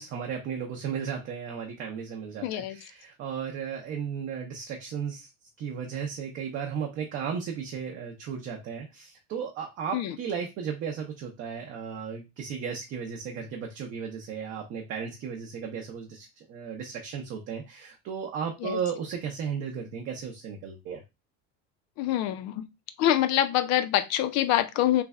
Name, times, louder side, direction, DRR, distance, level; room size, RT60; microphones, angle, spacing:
voice 1, 0.0-5.3 5.6-21.0, right 7 dB, 45° right, 1 dB, 0.6 m, -35 dB
voice 2, 2.4-2.8 9.9-10.2 18.6-18.8 22.0-22.7 23.0-25.0, left 12 dB, 60° left, 11 dB, 0.5 m, -25 dB
3.3 x 2.1 x 3.5 m, 0.24 s
cardioid pair, 170°, 30 cm